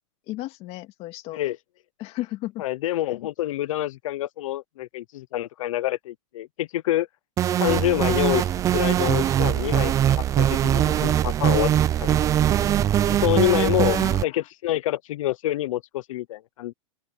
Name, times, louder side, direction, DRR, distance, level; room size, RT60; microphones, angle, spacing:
voice 1, 0.3-1.4 2.0-2.6 13.9-14.4, left 17 dB, 35° left, 2.2 m, -34 dB
voice 2, 2.6-7.1 7.6-11.7 12.0-12.3 13.1-16.7, left 14 dB, 75° left, 0.7 m, -27 dB
sound 1, 7.4-14.2, right 11 dB, 20° right, 0.5 m, -21 dB
open air
supercardioid pair, 155°, 17 cm